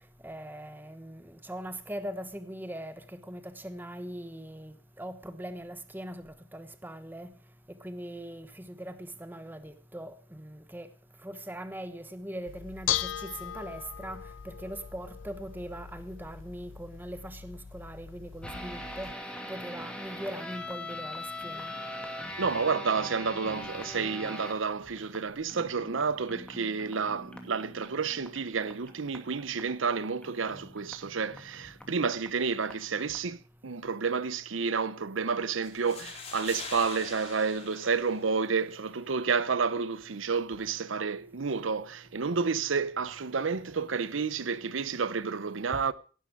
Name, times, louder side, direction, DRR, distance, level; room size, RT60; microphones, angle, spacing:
voice 1, 0.2-7.3 7.7-10.9 11.2-19.1 19.5-21.8 23.9-24.0 45.7-45.8, right 1 dB, 10° right, 1.1 m, -41 dB
Bell / Dishes pots and pans, 12.5-19.1, left 11 dB, 80° left, 0.6 m, -38 dB
sound 1, 18.4-32.7 33.1-33.2, left 1 dB, 5° left, 2.4 m, -43 dB
voice 2, 22.4-45.9, right 5 dB, 85° right, 0.8 m, -30 dB
sound 2, 35.6-38.6, left 4 dB, 35° left, 3.3 m, -43 dB
17.0 x 11.5 x 4.8 m
head